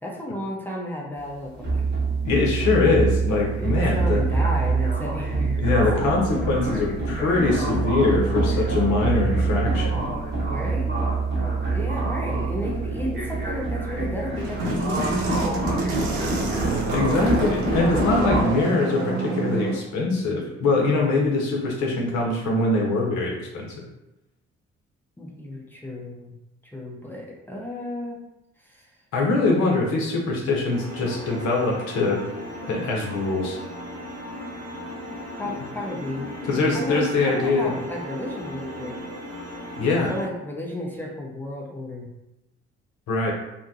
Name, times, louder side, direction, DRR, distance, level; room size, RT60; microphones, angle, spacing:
voice 1, 0.0-1.8 3.5-5.6 10.4-11.1 11.7-15.9 25.2-26.3 26.6-28.2 28.6-28.9 35.4-39.0 39.9-42.1, left 1 dB, 5° left, -2 dB, 0.7 m, -33 dB
sound 1, 1.2-18.4, right 3 dB, 30° right, 1.0 m, -25 dB
voice 2, 2.2-4.2 5.6-10.0 16.9-23.7 29.1-32.2 32.7-33.6 35.4-35.5 36.4-37.7 39.8-40.1 43.1-43.3, left 3 dB, 55° left, -1 dB, 0.8 m, -23 dB
sound 2, 14.3-19.8, right 2 dB, 70° right, 0.6 m, -28 dB
sound 3, 30.7-40.3, equal, 55° right, 1.3 m, -36 dB
2.9 x 2.2 x 2.7 m, 0.91 s
figure-of-eight pair, 45°, 34 cm